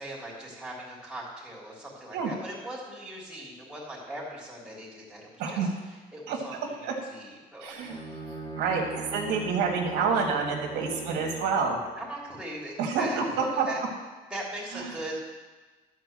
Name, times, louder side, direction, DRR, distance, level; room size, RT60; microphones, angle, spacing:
voice 1, 0.0-7.8 11.7-13.8 14.3-15.2, right 1 dB, 5° right, -4 dB, 3.5 m, -40 dB
voice 2, 7.6-8.0 8.6-11.8 12.8-13.7, right 5 dB, 80° right, 0 dB, 1.9 m, -28 dB
Bowed string instrument, 7.8-11.6, right 3 dB, 25° left, 2.2 m, -39 dB
12.5 x 4.7 x 7.5 m, 1.3 s
cardioid pair, 110°, 17 cm